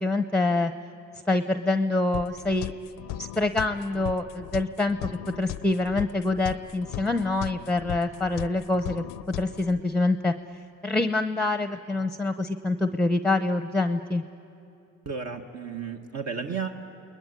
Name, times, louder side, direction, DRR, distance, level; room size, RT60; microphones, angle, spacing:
voice 1, 0.0-0.7 1.3-2.7 3.2-5.0 5.4-9.0 9.4-10.3 10.8-14.2, left 2 dB, 5° left, 10 dB, 0.7 m, -25 dB
sound 1, 2.1-9.8, left 14 dB, 85° left, 0.5 m, -38 dB
voice 2, 15.0-16.7, right 5 dB, 55° right, 3 dB, 1.5 m, -33 dB
29.5 x 20.5 x 9.7 m, 2.9 s
cardioid pair, 105°, 32 cm